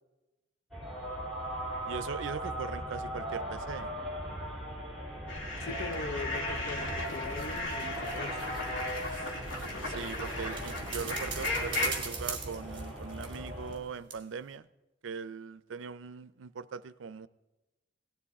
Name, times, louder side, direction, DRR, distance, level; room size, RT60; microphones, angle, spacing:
sound 1, 0.7-13.8, equal, ahead, 2.9 m, -39 dB
voice 1, 1.9-3.9 9.1-9.3 9.8-14.7 15.0-17.3, right 5 dB, 80° right, 0.5 m, -40 dB
sound 2, 5.3-11.9, left 2 dB, 85° left, 2.1 m, -36 dB
voice 2, 5.6-8.5, left 3 dB, 55° left, 0.5 m, -41 dB
sound 3, 6.8-13.8 14.1-14.2, right 5 dB, 25° right, 2.1 m, -43 dB
17.0 x 11.5 x 4.2 m
head